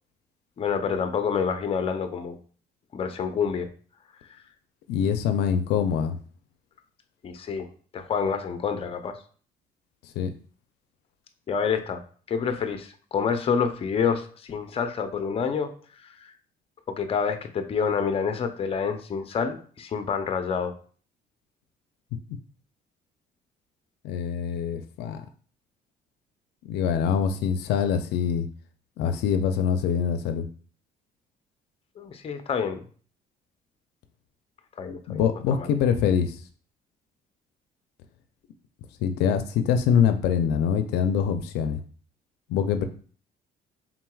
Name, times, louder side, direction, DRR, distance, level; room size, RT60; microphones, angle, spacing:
voice 1, 0.6-2.4 2.9-3.7 4.3-4.4 7.2-7.7 7.9-9.2 11.5-12.0 12.3-15.7 16.0-16.3 16.9-20.7 32.0-32.8 34.8-35.2 35.5-35.7, left 6 dB, 35° left, 8 dB, 0.5 m, -28 dB
voice 2, 4.9-6.2 10.2-10.3 24.0-25.2 26.6-28.5 29.0-30.5 34.9-36.4 39.0-41.8 42.5-42.9, left 7 dB, 85° left, 9 dB, 0.4 m, -24 dB
4.4 x 3.8 x 2.3 m, 0.43 s
cardioid pair, 110°, 17 cm